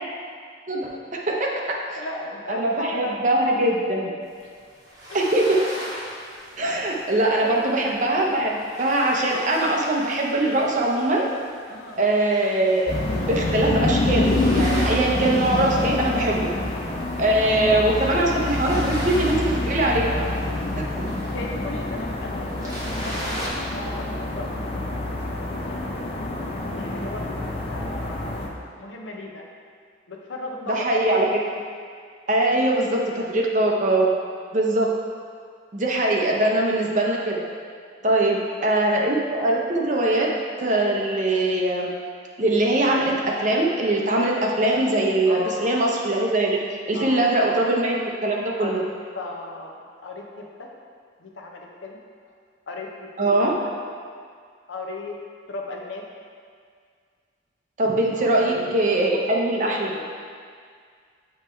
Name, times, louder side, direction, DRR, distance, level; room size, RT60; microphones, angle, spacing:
voice 1, 0.7-1.6 1.9-2.0 2.5-4.1 5.1-5.6 6.6-11.3 12.0-16.5 17.2-20.1 26.6-26.7 30.7-31.4 32.3-34.1 34.5-34.9 35.7-37.4 38.0-40.3 40.6-41.9 42.4-46.6 46.9-48.0 48.2-48.8 53.2-53.5 57.8-59.9, right 1 dB, 40° right, -1 dB, 0.7 m, -22 dB
voice 2, 1.9-3.3 3.5-3.6 4.4-4.5 5.1-5.2 6.4-6.5 7.4-7.9 11.7-12.0 17.4-18.3 20.1-20.4 20.7-20.9 21.3-24.9 25.6-26.5 26.7-28.3 28.8-29.5 30.1-31.1 38.0-38.8 45.3-45.7 46.9-47.6 48.6-48.9 49.1-50.7 51.2-52.0 52.7-52.9 53.2-53.7 54.7-55.2 55.5-56.0 58.2-58.8 59.1-59.3 59.6-60.1, left 2 dB, 85° left, 0 dB, 0.7 m, -36 dB
sound 1, 4.4-11.5 11.9-23.5, equal, 20° right, 1.4 m, -39 dB
sound 2, 12.9-28.5, left 2 dB, 30° left, 0.6 m, -27 dB
7.3 x 3.1 x 4.5 m, 2.1 s
head